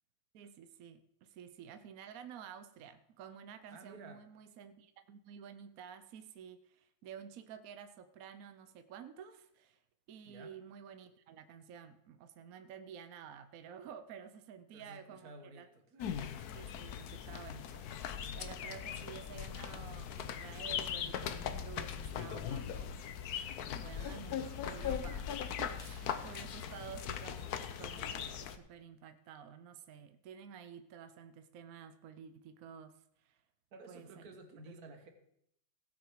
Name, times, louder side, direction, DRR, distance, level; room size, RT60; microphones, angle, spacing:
voice 1, 0.3-9.8 10.1-15.7 16.5-23.0 23.8-33.4 33.9-34.2 34.7-35.0, right 8 dB, 70° right, 10 dB, 0.8 m, -51 dB
voice 2, 3.7-4.2 10.2-10.5 14.7-16.3 33.7-35.1, right 2 dB, 50° right, 6 dB, 1.7 m, -53 dB
sound 1, 16.0-28.6, left 8 dB, 65° left, 1.0 m, -40 dB
17.0 x 6.2 x 4.7 m, 0.75 s
omnidirectional pair, 2.2 m